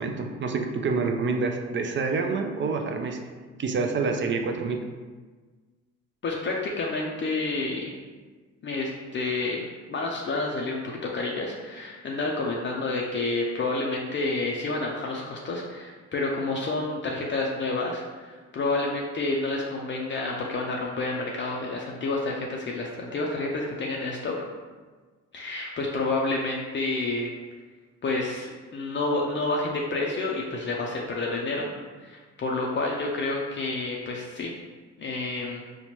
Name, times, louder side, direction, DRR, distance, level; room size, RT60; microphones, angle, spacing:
voice 1, 0.0-3.2 3.6-4.8, right 4 dB, 40° right, 4 dB, 0.4 m, -27 dB
voice 2, 6.2-7.9 8.6-24.3 25.3-27.3 28.0-31.7 32.0-34.5 35.0-35.6, left 2 dB, 40° left, -2 dB, 0.5 m, -29 dB
4.2 x 2.1 x 3.0 m, 1.4 s
cardioid pair, 90°, 30 cm